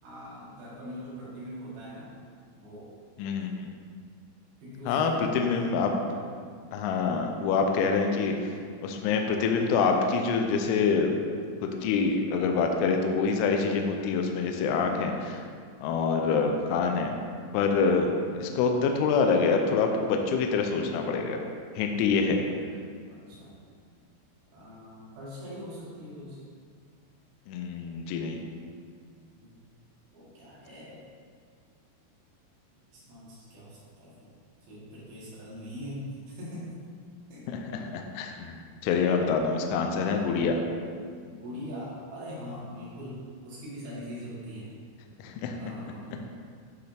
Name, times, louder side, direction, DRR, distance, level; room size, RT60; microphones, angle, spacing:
voice 1, 0.0-2.1 2.6-2.9 4.6-5.7 23.1-23.5 24.5-26.4 29.4-29.5 30.1-31.0 32.9-34.3 34.6-36.8 37.3-37.5 40.0-40.3 41.3-43.2 43.4-44.7 45.5-46.2, equal, 60° right, -8 dB, 3.5 m, -42 dB
voice 2, 3.2-3.7 4.9-5.9 6.7-8.6 8.8-11.1 11.6-15.4 15.8-17.1 17.5-18.1 18.4-21.4 21.8-22.4 27.5-28.4 37.5-40.6 45.2-45.6, left 5 dB, 85° left, 3 dB, 3.0 m, -26 dB
11.5 x 4.7 x 3.4 m, 2.1 s
omnidirectional pair, 5.6 m